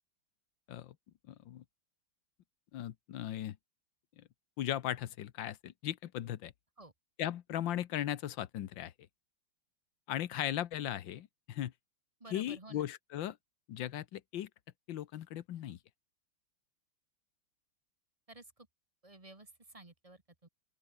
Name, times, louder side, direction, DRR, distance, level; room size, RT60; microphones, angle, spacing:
voice 1, 1.3-1.6 2.7-3.6 4.2-4.3 4.6-6.5 7.2-8.9 10.1-11.7 12.3-13.4 13.7-14.5 14.9-15.8, left 12 dB, 65° left, 1.6 m, -37 dB
voice 2, 12.2-12.9 18.3-18.7 19.0-20.5, right 2 dB, 20° right, 1.7 m, -53 dB
open air
omnidirectional pair, 2.3 m